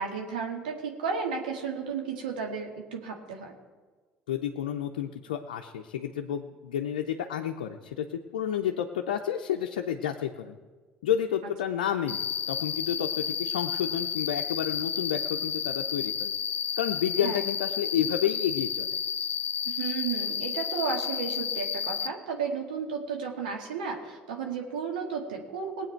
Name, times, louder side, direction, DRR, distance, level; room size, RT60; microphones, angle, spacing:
voice 1, 0.0-3.5 17.2-17.4 19.7-25.9, right 5 dB, 90° right, 2 dB, 1.8 m, -33 dB
voice 2, 4.3-10.6 11.0-16.3 16.8-19.0, left 9 dB, 85° left, 3 dB, 0.6 m, -30 dB
Cricket, 12.1-22.1, left 8 dB, 40° left, 0.7 m, -31 dB
19.0 x 8.5 x 4.5 m, 1.4 s
hypercardioid pair, 70°, 5 cm